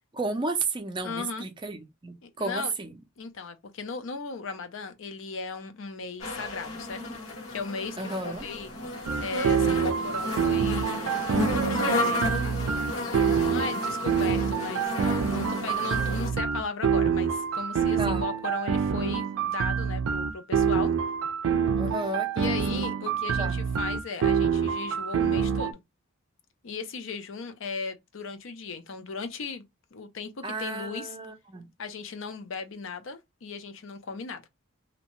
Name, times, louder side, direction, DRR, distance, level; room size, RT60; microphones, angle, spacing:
voice 1, 0.1-2.9 8.0-8.5 18.0-18.3 21.8-22.9 23.4-23.6 30.4-31.7, right 3 dB, 20° right, 0.4 m, -33 dB
voice 2, 1.0-1.5 2.2-2.7 3.2-7.0 7.5-8.7 9.2-11.0 11.3-12.2 13.5-20.9 22.4-25.8 26.6-29.6 29.9-31.2 31.8-34.4, left 4 dB, 65° left, 0.5 m, -37 dB
sound 1, 6.2-16.3, left 2 dB, 90° left, 1.2 m, -32 dB
sound 2, 9.1-25.7, right 7 dB, 85° right, 0.4 m, -26 dB
2.8 x 2.1 x 2.9 m
head